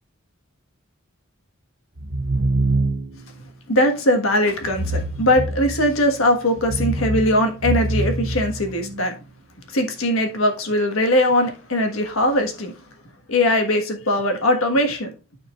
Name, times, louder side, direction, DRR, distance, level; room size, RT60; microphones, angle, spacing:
sound 1, 2.0-3.3 4.6-6.0 6.6-9.1, right 2 dB, 85° right, 1.0 m, -25 dB
voice 1, 3.7-9.1 9.7-12.7 13.3-15.1, left 1 dB, 80° left, 5 dB, 1.5 m, -20 dB
12.0 x 4.5 x 2.5 m, 0.31 s
head